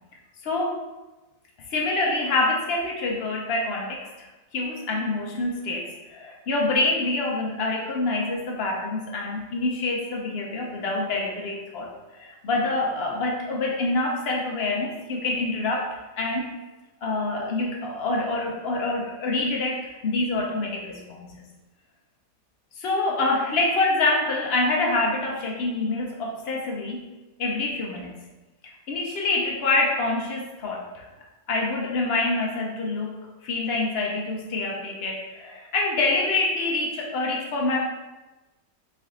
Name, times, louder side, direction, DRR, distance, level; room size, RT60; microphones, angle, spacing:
voice 1, 0.4-0.8 1.6-4.1 4.5-15.9 16.2-16.5 17.0-21.4 22.8-27.0 27.4-28.1 28.6-31.1 31.5-37.8, left 2 dB, 70° left, -1 dB, 0.5 m, -26 dB
4.2 x 3.4 x 3.7 m, 1.1 s
omnidirectional pair, 1.8 m